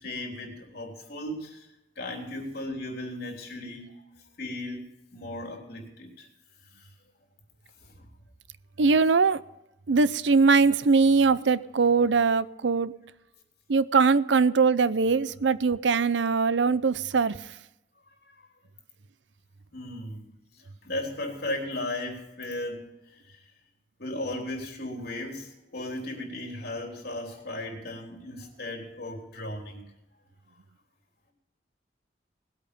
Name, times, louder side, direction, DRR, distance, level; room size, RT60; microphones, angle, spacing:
voice 1, 0.0-1.7 2.0-4.0 4.4-4.9 5.1-6.3 7.8-8.0 18.3-18.5 19.7-20.3 20.8-23.4 24.0-29.8, left 1 dB, 60° left, 2 dB, 3.5 m, -36 dB
voice 2, 8.8-9.4 9.9-12.9 13.7-17.4, right 4 dB, 80° right, 17 dB, 0.6 m, -21 dB
19.0 x 8.6 x 5.3 m, 0.92 s
head